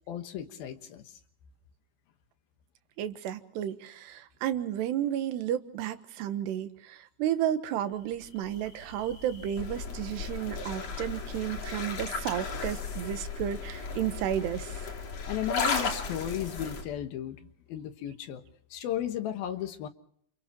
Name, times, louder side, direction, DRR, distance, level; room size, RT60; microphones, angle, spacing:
voice 1, 0.1-1.1 15.3-18.4 18.7-19.9, left 10 dB, 70° left, 7 dB, 3.1 m, -35 dB
voice 2, 3.0-14.8, right 11 dB, 85° right, 10 dB, 3.4 m, -32 dB
sound 1, 8.1-16.8, left 4 dB, 45° left, 3.4 m, -35 dB
30.0 x 29.0 x 3.0 m, 0.64 s
omnidirectional pair, 4.7 m